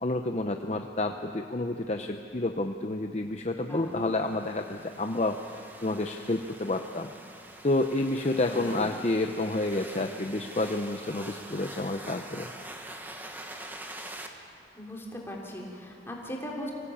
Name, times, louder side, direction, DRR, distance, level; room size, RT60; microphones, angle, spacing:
voice 1, 0.0-5.4 5.8-7.1 7.6-12.5, left 2 dB, 35° left, 5 dB, 0.7 m, -29 dB
sound 1, 3.8-14.3, right 1 dB, 10° right, 1.3 m, -45 dB
voice 2, 14.7-16.7, equal, 15° left, -2 dB, 3.4 m, -39 dB
25.5 x 16.5 x 8.6 m, 2.5 s
head